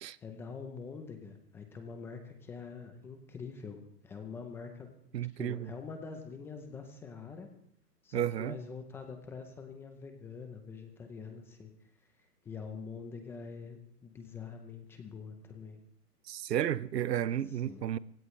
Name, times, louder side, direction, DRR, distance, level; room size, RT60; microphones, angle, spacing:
voice 1, 0.2-4.9 5.4-7.5 8.0-11.7 12.4-15.8 17.5-17.8, left 5 dB, 5° left, 0.6 m, -45 dB
voice 2, 5.1-5.7 8.1-8.6 16.3-18.0, right 11 dB, 80° right, 0.8 m, -32 dB
27.0 x 16.5 x 3.2 m
hypercardioid pair, 145°, 48 cm